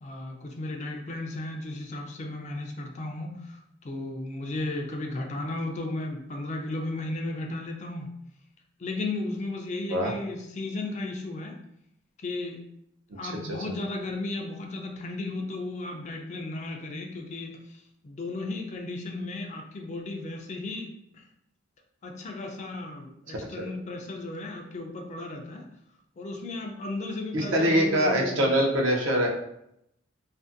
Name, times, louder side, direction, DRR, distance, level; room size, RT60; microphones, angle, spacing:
voice 1, 0.0-8.1 8.8-11.6 12.2-12.6 13.2-21.2 22.0-25.7 26.2-28.5, left 2 dB, 35° left, 2 dB, 0.4 m, -35 dB
voice 2, 27.3-29.3, equal, 70° right, 0 dB, 0.6 m, -23 dB
2.5 x 2.5 x 2.5 m, 0.77 s
head